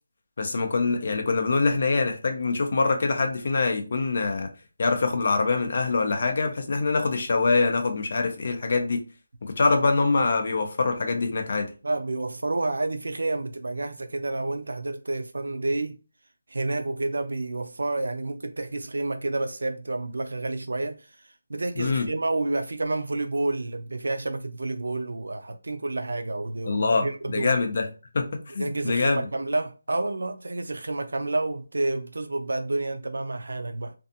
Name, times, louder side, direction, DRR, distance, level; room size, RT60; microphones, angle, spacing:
voice 1, 0.4-4.5 4.8-9.0 9.4-11.7 21.8-22.1 26.7-27.1 27.3-27.9 28.1-28.2 28.5-29.2, left 3 dB, 35° left, 0.5 m, -24 dB
voice 2, 11.8-16.0 16.5-21.1 21.5-27.5 28.6-33.9, right 2 dB, 75° right, 0.3 m, -29 dB
2.5 x 2.3 x 2.6 m
figure-of-eight pair, 175°, 0 cm